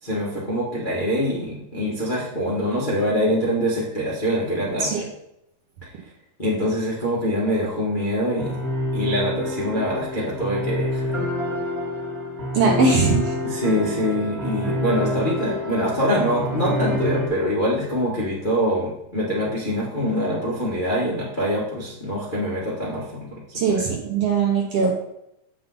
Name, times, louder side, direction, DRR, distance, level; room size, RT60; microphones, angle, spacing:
voice 1, 0.0-5.1 5.8-5.9 6.4-8.6 8.9-11.2 13.4-23.8, equal, 30° left, -6 dB, 0.9 m, -24 dB
sound 1, 8.4-17.3, left 1 dB, 25° right, 1.5 m, -27 dB
voice 2, 12.5-13.2 23.5-25.0, right 4 dB, 60° right, -1 dB, 1.9 m, -20 dB
7.6 x 7.1 x 3.9 m, 0.80 s
omnidirectional pair, 3.8 m